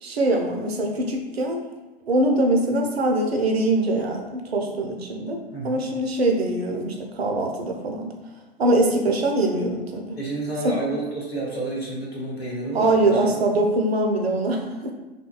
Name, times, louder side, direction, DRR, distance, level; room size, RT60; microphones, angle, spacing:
voice 1, 0.0-1.6 2.1-8.1 8.6-10.2 10.6-10.8 12.7-14.9, right 2 dB, 90° right, 2 dB, 0.5 m, -23 dB
voice 2, 5.5-5.8 10.2-13.4, right 2 dB, 85° left, -4 dB, 0.8 m, -30 dB
2.6 x 2.1 x 2.2 m, 1.1 s
figure-of-eight pair, 95°, 30 cm